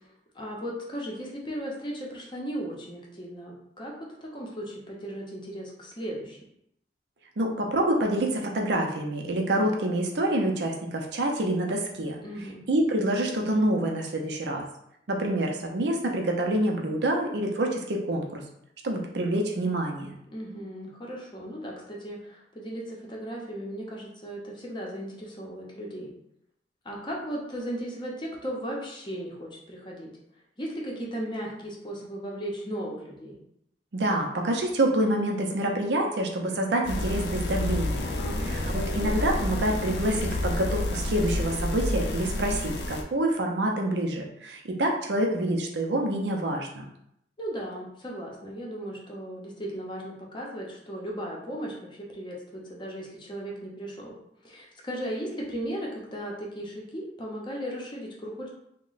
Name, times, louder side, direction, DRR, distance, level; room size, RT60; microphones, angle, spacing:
voice 1, 0.3-3.9 4.2-6.4 12.2-12.6 20.3-26.1 26.8-30.1 30.6-33.4 38.2-38.5 47.4-54.1 54.4-58.5, equal, 25° left, -3 dB, 0.7 m, -36 dB
voice 2, 7.4-12.2 12.7-14.6 15.1-18.4 18.8-20.1 33.9-38.2 38.4-46.9, right 1 dB, 70° right, 1 dB, 0.5 m, -27 dB
sound 1, 36.9-43.0, left 1 dB, 70° left, 0.4 m, -29 dB
2.9 x 2.1 x 3.9 m, 0.76 s
head